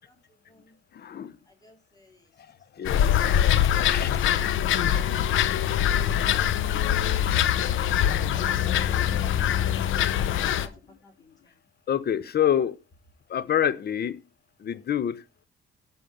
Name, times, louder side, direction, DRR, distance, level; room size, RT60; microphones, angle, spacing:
voice 1, 0.3-0.8 1.4-2.3 7.8-11.6, left 1 dB, 20° left, 4.4 m, -54 dB
voice 2, 0.9-1.4 2.5-3.4 3.7-4.2 11.9-12.8 13.3-14.2 14.6-15.2, left 9 dB, 55° left, 0.9 m, -27 dB
sound 1, 2.8-10.7, left 10 dB, 80° left, 0.9 m, -23 dB
12.5 x 6.3 x 5.2 m
cardioid pair, 90°, 20 cm